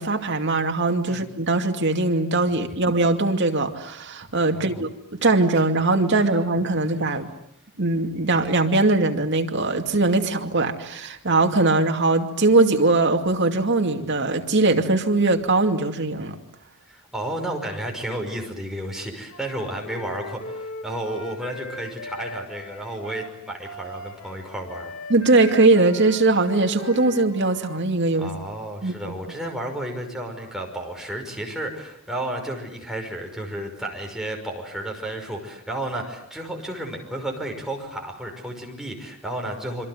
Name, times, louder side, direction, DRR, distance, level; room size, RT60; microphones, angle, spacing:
voice 1, 0.0-7.3 7.8-16.4 25.1-28.3 28.8-29.1, right 2 dB, 55° right, 2.5 m, -21 dB
voice 2, 4.5-4.8 16.9-24.9 28.2-39.9, right 1 dB, ahead, 5.7 m, -32 dB
Wind instrument woodwind instrument, 19.3-27.8, left 1 dB, 75° left, 3.5 m, -38 dB
26.5 x 25.5 x 7.9 m
head